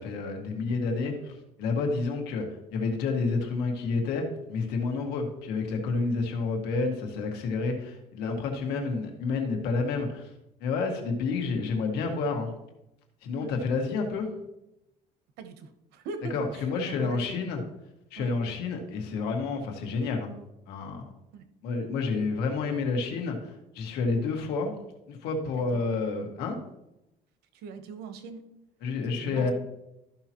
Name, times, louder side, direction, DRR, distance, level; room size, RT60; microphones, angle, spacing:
voice 1, 0.0-10.3 10.6-12.5 13.2-14.3 16.3-17.6 18.1-20.3 20.7-21.1 21.6-24.7 25.1-26.5 28.8-29.5, left 4 dB, 85° left, 3 dB, 1.8 m, -29 dB
voice 2, 15.4-17.4 18.2-18.3 21.3-21.5 25.6-26.0 27.5-28.4 29.1-29.5, right 4 dB, 80° right, 9 dB, 1.0 m, -41 dB
13.5 x 5.8 x 3.0 m, 0.88 s
cardioid pair, 125°, 16 cm